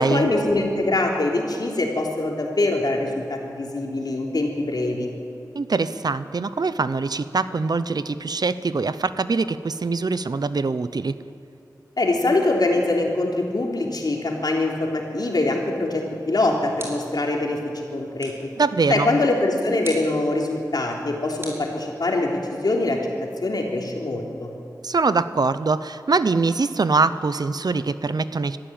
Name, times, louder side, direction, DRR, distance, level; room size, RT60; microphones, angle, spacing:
voice 1, 0.0-5.1 12.0-18.3 18.9-23.0 23.4-24.5, left 2 dB, 75° left, 0 dB, 3.4 m, -23 dB
voice 2, 5.5-11.2 18.6-19.2 24.8-28.6, right 4 dB, 70° right, 13 dB, 0.8 m, -23 dB
sound 1, 16.8-17.3 18.2-18.6 19.8-20.2 21.4-22.3, right 1 dB, 35° right, 5.4 m, -39 dB
22.0 x 14.0 x 8.9 m, 2.6 s
wide cardioid pair, 60°, 7 cm